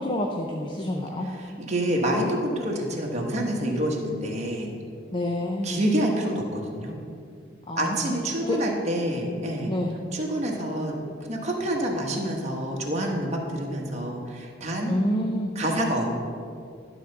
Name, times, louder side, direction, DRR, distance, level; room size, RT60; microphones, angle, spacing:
voice 1, 0.0-1.3 5.1-5.8 7.7-8.2 8.5-8.6 9.7-10.0 14.9-15.5, left 1 dB, 25° left, 1 dB, 0.5 m, -28 dB
voice 2, 1.4-4.7 5.6-7.0 7.7-9.7 10.1-14.9 15.5-16.1, right 1 dB, 35° right, -1 dB, 1.3 m, -27 dB
12.0 x 4.0 x 6.5 m, 2.3 s
head